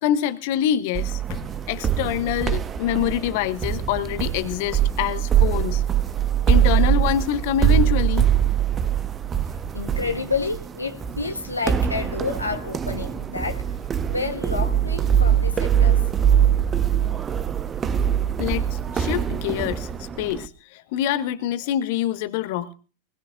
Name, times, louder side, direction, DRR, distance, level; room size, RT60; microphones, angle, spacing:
voice 1, 0.0-1.4 1.7-5.8 6.5-8.3 18.4-22.7, left 11 dB, 50° left, 1.6 m, -25 dB
sound 1, 0.9-20.5, right 9 dB, 20° right, 1.0 m, -23 dB
voice 2, 9.7-13.8 14.1-16.1, left 4 dB, 80° left, 1.5 m, -29 dB
23.5 x 21.5 x 2.5 m
figure-of-eight pair, 90°, 0 cm